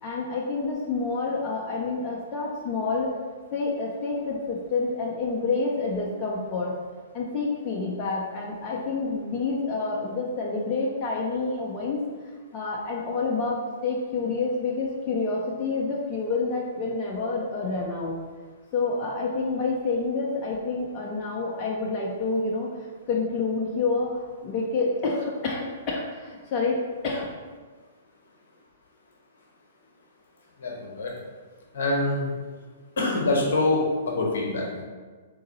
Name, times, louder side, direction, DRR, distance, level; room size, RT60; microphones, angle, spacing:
voice 1, 0.0-3.1 3.5-6.7 7.1-12.0 12.5-18.2 18.7-22.7 23.1-27.2, left 3 dB, 35° left, -3 dB, 0.7 m, -28 dB
voice 2, 30.6-31.2 31.7-32.3 33.0-34.8, left 2 dB, 65° left, -1 dB, 1.0 m, -25 dB
3.7 x 2.8 x 4.1 m, 1.5 s
figure-of-eight pair, 115°, 0 cm